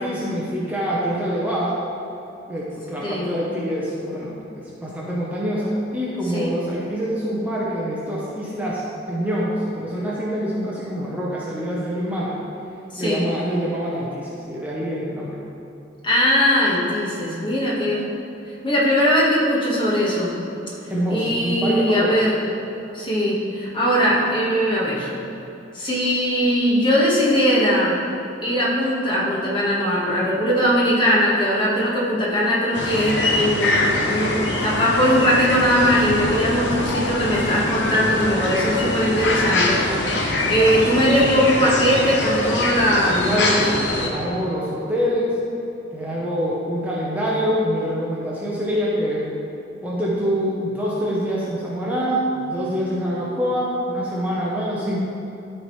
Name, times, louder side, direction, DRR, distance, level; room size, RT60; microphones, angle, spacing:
voice 1, 0.0-1.8 2.5-12.4 13.0-15.4 20.9-22.2 43.2-45.4 45.9-49.3 49.8-55.0, equal, 10° right, -7 dB, 0.8 m, -25 dB
voice 2, 12.9-13.2 16.0-18.1 18.6-20.3 21.1-22.4 22.9-25.1 25.7-28.0 28.4-40.1 40.5-43.3, equal, 25° left, -5 dB, 1.4 m, -20 dB
sound 1, 32.7-44.1, left 2 dB, 70° left, 0.8 m, -23 dB
12.5 x 4.4 x 3.2 m, 2.9 s
head